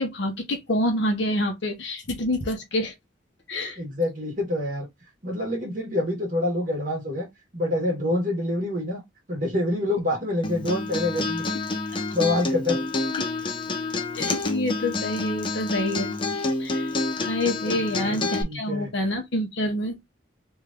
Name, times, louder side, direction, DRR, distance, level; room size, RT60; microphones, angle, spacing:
voice 1, 0.0-2.9 3.5-3.8 14.1-16.9 17.3-20.0, left 1 dB, 65° left, 0.9 m, -27 dB
voice 2, 3.8-4.9 5.2-7.3 7.5-9.0 9.3-11.4 11.9-12.9 17.7-18.9, left 1 dB, 40° right, 1.4 m, -27 dB
Acoustic guitar, 10.4-18.4, left 3 dB, 25° left, 0.5 m, -28 dB
3.2 x 2.6 x 3.5 m
head